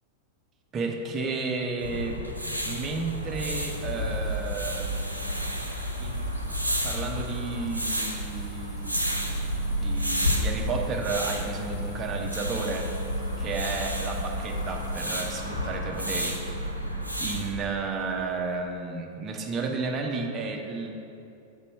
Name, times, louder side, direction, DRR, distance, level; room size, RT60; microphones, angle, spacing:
voice 1, 0.7-2.2 2.7-5.0 6.0-6.2 6.8-9.1 9.8-12.9 13.4-16.4 17.2-20.9, right 4 dB, 25° right, 2 dB, 0.7 m, -32 dB
sound 1, 1.8-17.5, equal, 90° right, 0.7 m, -31 dB
sound 2, 3.3-15.3, left 1 dB, 20° left, 1.1 m, -50 dB
sound 3, 8.1-18.2, left 8 dB, 50° left, 0.5 m, -46 dB
7.1 x 4.2 x 5.3 m, 2.6 s
figure-of-eight pair, 90°, 0 cm